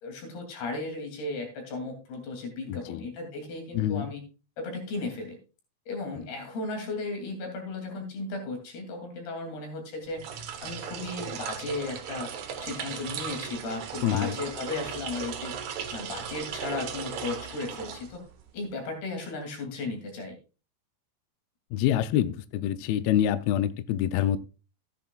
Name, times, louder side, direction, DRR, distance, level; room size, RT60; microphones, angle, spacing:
voice 1, 0.0-4.2 4.6-5.4 5.9-10.2 10.6-12.3 12.6-15.5 15.9-18.2 18.5-20.4, left 3 dB, 65° left, 3 dB, 4.6 m, -35 dB
voice 2, 2.7-3.0 3.7-4.1 14.0-14.4 21.7-24.4, left 11 dB, 90° left, 12 dB, 2.1 m, -26 dB
sound 1, 10.1-18.5, right 8 dB, 80° right, 1.6 m, -37 dB
14.0 x 10.0 x 2.4 m, 0.33 s
omnidirectional pair, 5.1 m